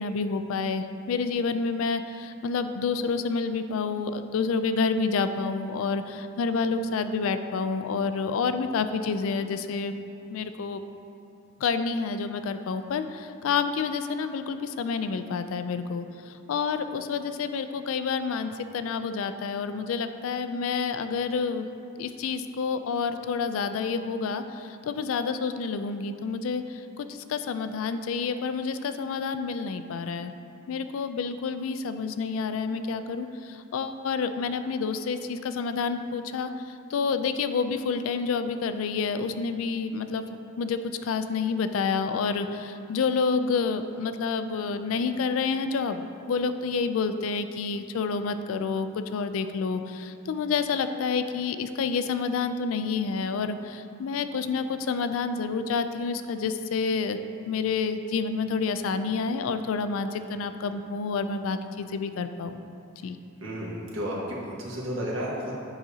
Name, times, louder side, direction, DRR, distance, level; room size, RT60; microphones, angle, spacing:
voice 1, 0.0-9.9 10.3-10.8 11.6-21.7 22.0-30.3 30.7-40.2 40.6-57.2 57.5-62.6 63.0-63.2, left 5 dB, 75° left, 10 dB, 0.3 m, -29 dB
voice 2, 63.4-65.6, equal, 70° right, -5 dB, 1.4 m, -32 dB
8.9 x 4.8 x 2.8 m, 2.6 s
head